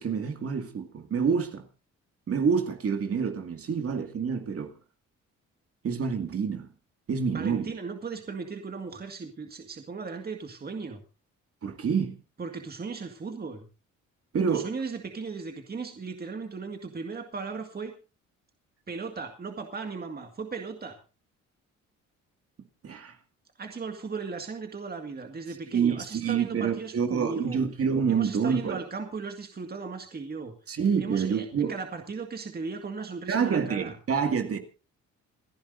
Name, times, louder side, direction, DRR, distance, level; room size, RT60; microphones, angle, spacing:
voice 1, 0.0-1.7 2.3-4.7 5.8-6.7 7.1-7.7 11.6-12.2 14.3-14.7 22.8-23.2 25.7-28.8 30.7-31.8 33.3-34.6, right 6 dB, 50° right, 2.3 m, -27 dB
voice 2, 7.3-11.0 12.4-13.7 14.5-17.9 18.9-20.9 23.6-27.6 28.1-30.5 31.0-33.9, right 4 dB, 30° right, 2.0 m, -37 dB
28.5 x 10.5 x 2.7 m
cardioid pair, 90°, 30 cm